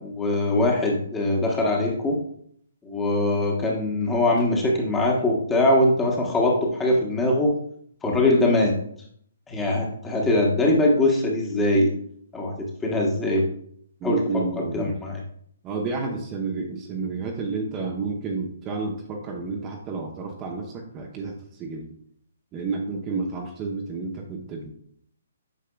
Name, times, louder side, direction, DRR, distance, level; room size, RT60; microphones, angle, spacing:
voice 1, 0.0-2.2 2.8-7.5 8.0-8.7 9.5-11.9 12.3-13.5 14.0-15.2, left 1 dB, 10° left, -1 dB, 1.3 m, -22 dB
voice 2, 14.0-14.9 15.6-21.9 22.5-24.7, right 4 dB, 25° right, 0 dB, 1.0 m, -30 dB
8.4 x 5.6 x 2.4 m, 0.65 s
figure-of-eight pair, 135°, 0 cm